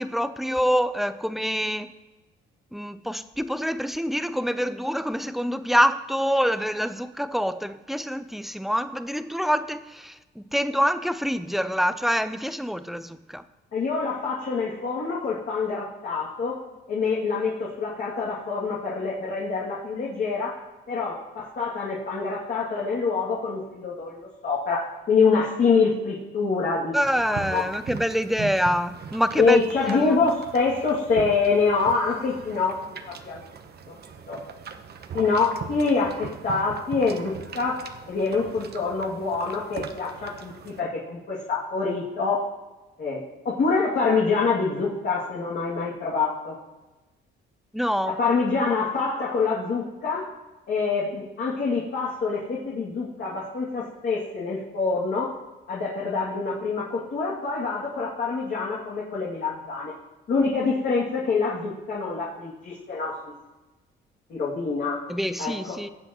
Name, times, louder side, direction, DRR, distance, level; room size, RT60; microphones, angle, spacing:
voice 1, 0.0-1.9 2.7-13.4 26.9-29.6 29.9-30.2 47.7-48.2 65.1-65.9, equal, ahead, 12 dB, 0.5 m, -26 dB
voice 2, 13.7-16.6 16.9-20.6 20.9-27.0 27.2-27.6 29.4-32.8 33.1-33.4 34.3-34.4 35.1-42.4 43.0-46.6 48.0-50.3 50.7-55.3 55.7-59.9 60.3-63.2 64.3-65.0 65.4-65.8, left 4 dB, 60° left, -7 dB, 2.5 m, -25 dB
sound 1, 27.0-40.8, right 6 dB, 55° right, 1.0 m, -40 dB
18.0 x 7.7 x 3.0 m, 1.1 s
cardioid pair, 90°, 20 cm